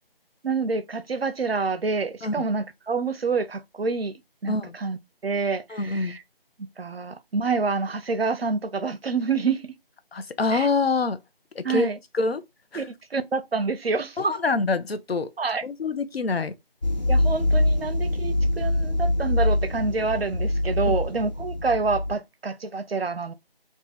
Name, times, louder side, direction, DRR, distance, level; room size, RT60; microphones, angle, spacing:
voice 1, 0.4-4.1 4.4-6.2 6.6-9.7 10.5-10.7 11.6-12.0 12.7-14.4 15.4-15.6 17.1-23.3, right 4 dB, 85° right, 0.6 m, -27 dB
voice 2, 5.7-6.2 10.1-11.2 11.6-12.4 12.7-12.8 14.2-15.3 15.6-16.5 20.9-21.0, left 3 dB, 85° left, 0.7 m, -26 dB
sound 1, 16.8-22.1, left 1 dB, 45° left, 0.6 m, -24 dB
2.8 x 2.4 x 3.9 m
figure-of-eight pair, 175°, 30 cm